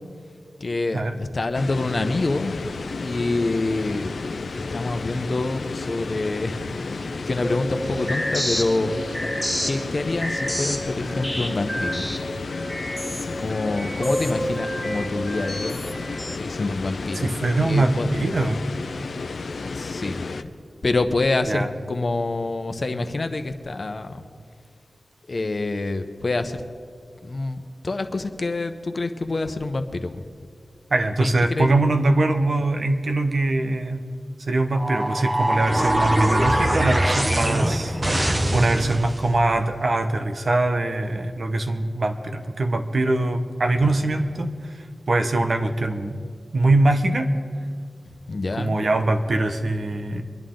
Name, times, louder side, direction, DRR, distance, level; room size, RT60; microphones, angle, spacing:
voice 1, 0.6-2.7 3.0-8.9 9.7-12.1 13.2-15.9 16.3-18.1 19.6-20.2 20.8-24.2 25.3-26.6 27.2-30.3 31.2-31.7 37.8-38.6 48.1-48.8, left 2 dB, 50° left, 8 dB, 1.0 m, -27 dB
sound 1, 1.5-20.4, left 4 dB, 75° left, 0.6 m, -32 dB
sound 2, 7.4-16.4, equal, 10° right, 1.6 m, -30 dB
voice 2, 17.2-18.6 21.5-21.7 30.9-34.0 34.4-38.0 38.5-46.2 46.5-47.3 48.6-50.2, right 2 dB, 65° right, 6 dB, 1.1 m, -22 dB
sound 3, 34.8-39.3, right 1 dB, 30° right, 1.1 m, -23 dB
24.5 x 11.0 x 3.9 m, 2.1 s
wide cardioid pair, 75°, 0 cm